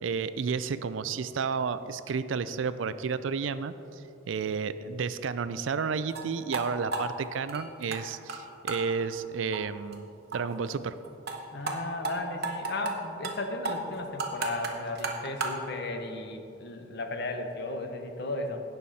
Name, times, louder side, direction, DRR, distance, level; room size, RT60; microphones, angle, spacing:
voice 1, 0.0-3.7 4.3-10.1 10.3-11.0, right 5 dB, 80° right, 13 dB, 0.4 m, -31 dB
sound 1, 6.1-6.2 6.5-6.6 6.9-8.0 8.3-8.4 8.7-8.8 9.1-9.2 9.5-9.6 9.9-10.0 10.3-10.4 10.6-10.7 11.0-11.4 11.7-11.8 12.0-12.1 12.4-12.9 13.2-13.4 13.6-15.6, right 3 dB, 60° right, 1.1 m, -33 dB
voice 2, 11.5-18.6, left 2 dB, 60° left, 5 dB, 1.0 m, -35 dB
16.5 x 5.6 x 4.2 m, 2.8 s
head